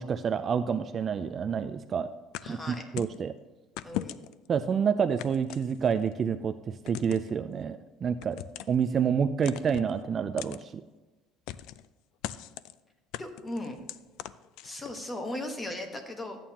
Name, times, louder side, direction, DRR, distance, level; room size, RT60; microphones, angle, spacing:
voice 1, 0.0-2.1 2.5-3.3 4.5-8.4 8.7-10.8, right 7 dB, 30° right, 10 dB, 0.3 m, -28 dB
sound 1, 2.3-3.2 3.8-4.5 5.2-6.1 6.9-7.3 8.2-8.8 9.4-9.9 10.4-10.6 11.5-11.9 12.2-12.7 13.1-15.0, left 14 dB, 75° left, 0.3 m, -39 dB
voice 2, 2.4-2.9 3.8-4.2 13.2-13.8 14.6-16.4, left 1 dB, 15° left, 5 dB, 1.1 m, -37 dB
13.0 x 8.9 x 2.9 m, 1.2 s
cardioid pair, 160°, 0 cm